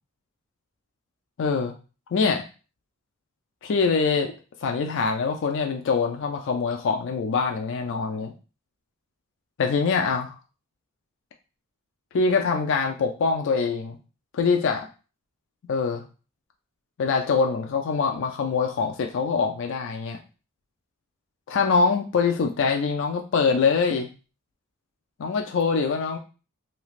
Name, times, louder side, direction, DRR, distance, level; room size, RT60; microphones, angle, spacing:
voice 1, 1.4-1.7 2.1-2.4 3.6-4.3 4.6-8.3 9.6-10.4 12.1-14.0 14.3-14.9 15.7-16.0 17.0-20.2 21.5-24.1 25.2-26.2, left 5 dB, 60° left, 3 dB, 0.4 m, -24 dB
3.2 x 2.8 x 2.4 m, 0.34 s
head